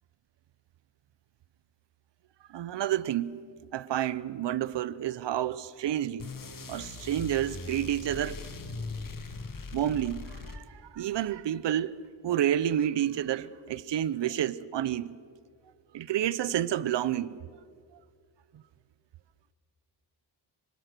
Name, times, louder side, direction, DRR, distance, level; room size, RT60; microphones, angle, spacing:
voice 1, 2.5-3.4 3.7-6.3 6.7-8.4 9.7-11.9 12.2-15.2 15.9-17.4, right 11 dB, 70° right, 0.8 m, -29 dB
sound 1, 6.2-11.0, left 3 dB, 45° left, 1.7 m, -40 dB
25.0 x 25.0 x 6.7 m
wide cardioid pair, 120°, 44 cm